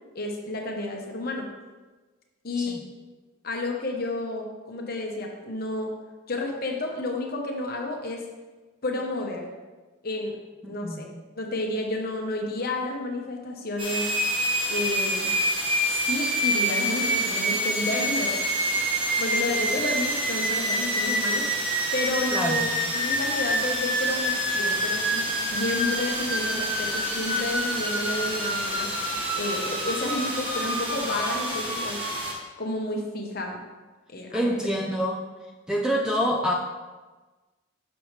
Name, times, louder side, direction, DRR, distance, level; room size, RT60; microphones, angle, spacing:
voice 1, 0.1-1.5 2.4-2.9 3.4-5.9 6.3-8.2 8.8-9.5 10.0-10.4 10.6-11.1 11.3-14.1 14.7-15.3 15.9-18.9 19.2-21.5 21.9-28.9 29.3-32.0 32.6-33.6 34.1-34.5, left 2 dB, 45° left, 2 dB, 0.9 m, -31 dB
voice 2, 10.6-11.0 22.3-22.7 34.3-35.3 35.7-36.5, equal, 5° right, -1 dB, 0.4 m, -26 dB
sound 1, 13.8-32.3, equal, 25° right, 1.4 m, -27 dB
6.9 x 6.2 x 3.2 m, 1.3 s
head